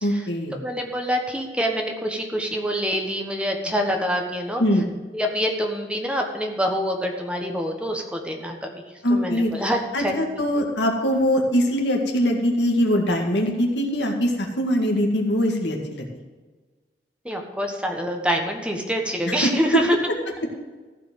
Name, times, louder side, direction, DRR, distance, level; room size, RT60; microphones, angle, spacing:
voice 1, 0.0-0.5 4.6-4.9 9.0-9.5 9.9-16.1 19.3-19.4, equal, 85° left, 2 dB, 2.0 m, -22 dB
voice 2, 0.6-4.6 5.1-8.8 9.1-10.1 17.2-20.0, equal, 5° right, 2 dB, 1.3 m, -26 dB
14.5 x 4.9 x 7.8 m, 1.3 s
head